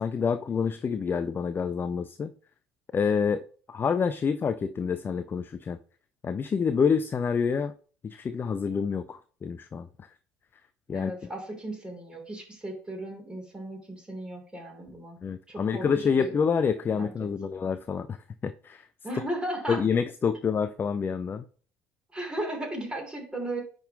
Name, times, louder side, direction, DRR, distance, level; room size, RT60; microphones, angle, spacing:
voice 1, 0.0-2.3 2.9-3.4 3.7-5.8 6.2-7.7 8.0-9.9 10.9-11.1 15.2-18.2 18.4-18.8 19.7-21.4, left 6 dB, 25° left, 12 dB, 0.4 m, -27 dB
voice 2, 10.9-15.2 15.5-16.3 16.9-17.3 19.0-19.8 22.1-23.6, right 1 dB, 10° right, 1 dB, 3.1 m, -36 dB
9.9 x 3.8 x 3.6 m, 0.42 s
figure-of-eight pair, 60°, 8 cm